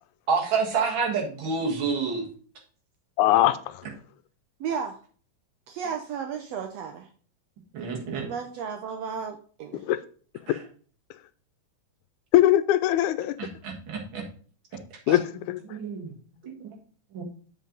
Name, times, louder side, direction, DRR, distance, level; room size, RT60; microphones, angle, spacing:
voice 1, 0.3-2.3 7.7-8.3 10.5-10.6 13.4-14.2 15.1-15.2 15.7-16.1 16.4-16.7 17.1-17.2, right 5 dB, 45° right, -1 dB, 2.2 m, -28 dB
voice 2, 3.2-3.8 9.9-10.0 12.3-13.4 15.1-15.6, left 13 dB, 85° left, 13 dB, 2.0 m, -21 dB
voice 3, 4.6-5.0 5.7-7.1 8.2-9.8, right 6 dB, 75° right, 5 dB, 1.6 m, -33 dB
7.6 x 5.4 x 3.8 m, 0.43 s
omnidirectional pair, 3.4 m